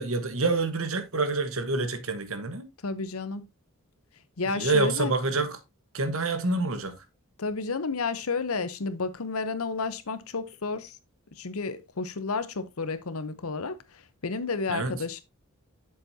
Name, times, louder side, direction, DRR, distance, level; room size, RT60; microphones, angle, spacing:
voice 1, 0.0-2.7 4.4-5.6 5.9-6.9 14.7-14.9, right 3 dB, 65° right, 1.3 m, -27 dB
voice 2, 2.8-3.4 4.4-5.1 7.4-11.0 11.4-15.2, left 4 dB, 75° left, 0.9 m, -31 dB
8.0 x 7.0 x 2.8 m
head